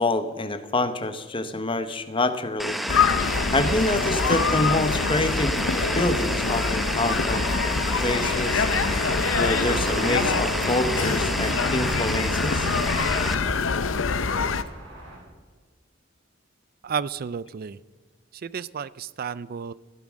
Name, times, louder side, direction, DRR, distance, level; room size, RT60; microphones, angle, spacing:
voice 1, 0.0-2.8 3.5-5.6 5.9-7.5 8.0-8.6 9.4-12.7, left 2 dB, 25° left, 10 dB, 1.0 m, -26 dB
sound 1, 2.6-13.3, equal, ahead, 0.8 m, -30 dB
Park children play early spring Vilnius, 2.9-14.6, left 4 dB, 85° left, 0.8 m, -25 dB
sound 2, 8.8-15.2, right 2 dB, 75° right, 4.9 m, -39 dB
voice 2, 16.8-17.8 18.3-19.7, right 6 dB, 50° right, 18 dB, 0.4 m, -32 dB
15.5 x 11.0 x 6.2 m, 1.5 s
head